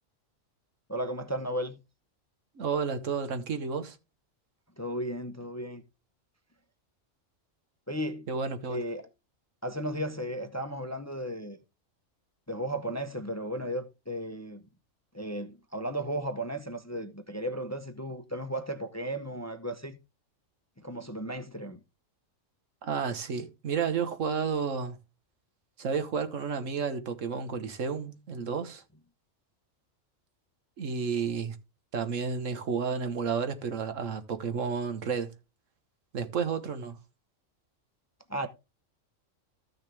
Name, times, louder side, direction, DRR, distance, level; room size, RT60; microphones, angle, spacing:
voice 1, 0.9-1.8 4.8-5.8 7.9-8.3 8.7-9.1 9.6-11.6 12.5-14.6 15.1-20.0 20.8-21.8 38.3-38.5, right 1 dB, 15° left, 0.7 m, -35 dB
voice 2, 2.6-4.0 8.3-8.8 22.8-25.0 25.8-28.8 30.8-31.6 31.9-35.3 36.1-37.0, right 6 dB, 80° right, 1.6 m, -31 dB
14.0 x 6.4 x 3.4 m
omnidirectional pair, 1.3 m